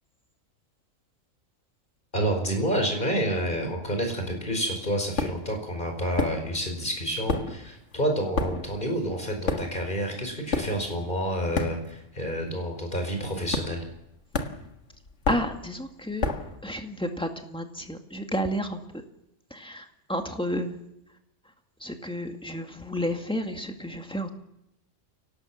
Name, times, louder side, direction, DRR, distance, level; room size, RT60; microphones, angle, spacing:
voice 1, 2.1-13.8, equal, 40° left, 4 dB, 5.2 m, -29 dB
sound 1, 5.2-5.6 6.1-6.8 7.1-12.2 12.4-12.8 13.5-14.0 14.3-16.6, left 3 dB, 65° left, 1.9 m, -31 dB
voice 2, 15.3-16.3 16.6-19.0 19.5-20.8 21.8-24.3, equal, 5° left, 4 dB, 2.0 m, -31 dB
25.0 x 18.0 x 7.3 m, 0.83 s
omnidirectional pair, 1.3 m